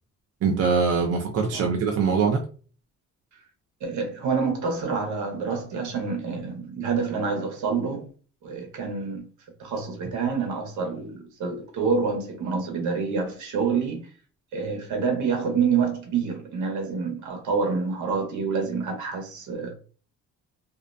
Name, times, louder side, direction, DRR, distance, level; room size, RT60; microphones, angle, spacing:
voice 1, 0.4-2.4, right 5 dB, 55° right, 0.5 m, -23 dB
voice 2, 3.8-8.1 8.4-9.2 9.6-14.1 14.5-19.7, right 5 dB, 75° right, 0.9 m, -27 dB
2.5 x 2.0 x 2.5 m
cardioid pair, 90°, 30 cm